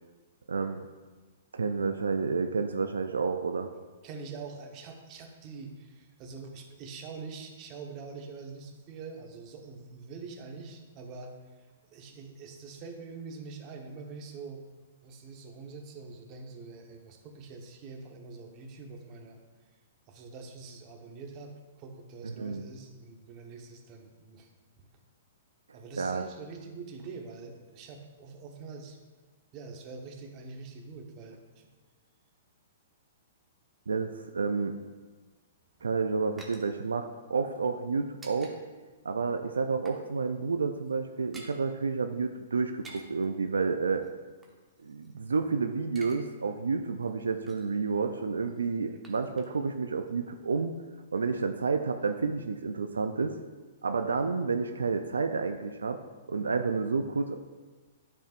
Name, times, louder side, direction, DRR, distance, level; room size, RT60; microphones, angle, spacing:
voice 1, 0.5-0.8 1.5-3.7 22.2-22.6 26.0-26.2 33.9-34.7 35.8-38.6 39.0-44.0 44.8-50.7 51.1-53.3 53.8-56.0 56.3-57.4, right 4 dB, 90° right, 7 dB, 0.4 m, -30 dB
voice 2, 4.0-11.3 11.9-14.6 15.0-19.4 20.1-24.5 24.8-24.9 25.7-29.0 29.5-31.7 35.8-35.9 48.8-49.0, right 4 dB, 35° right, 3 dB, 1.0 m, -44 dB
sound 1, 35.6-38.6 38.8-39.0 39.4-40.1 40.3-40.5 40.8-41.6 42.6-43.3 44.0-45.4 45.7-46.2 46.5-46.6 47.0-47.8 48.5-49.8 50.0-50.1, right 2 dB, 10° right, 1.0 m, -52 dB
10.5 x 4.4 x 2.5 m, 1.3 s
hypercardioid pair, 130°, 0 cm